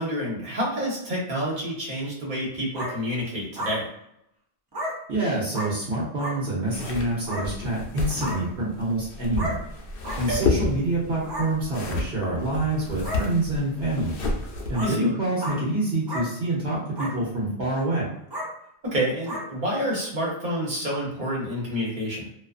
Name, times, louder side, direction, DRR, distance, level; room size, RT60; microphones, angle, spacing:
voice 1, 0.0-3.9 10.3-10.5 14.8-15.1 18.8-22.3, equal, 50° right, -4 dB, 1.1 m, -28 dB
sound 1, 2.7-2.9 3.6-3.8 4.7-4.9 5.5-5.7 6.2-6.3 7.3-7.4 8.2-8.4 9.4-9.6 10.0-10.2 11.2-11.5 12.3-12.4 13.0-13.2 13.8-13.9 14.7-14.9 15.4-15.6 16.1-16.3 17.0-17.1 17.7-17.8 18.3-18.5 19.3-19.4, equal, 35° right, 0.4 m, -32 dB
voice 2, 5.1-9.6 10.2-14.2 14.7-18.1, right 2 dB, 70° right, -6 dB, 1.0 m, -26 dB
sound 2, 6.6-14.9, left 3 dB, 65° left, 0.8 m, -31 dB
2.4 x 2.4 x 2.4 m, 0.78 s
omnidirectional pair, 1.1 m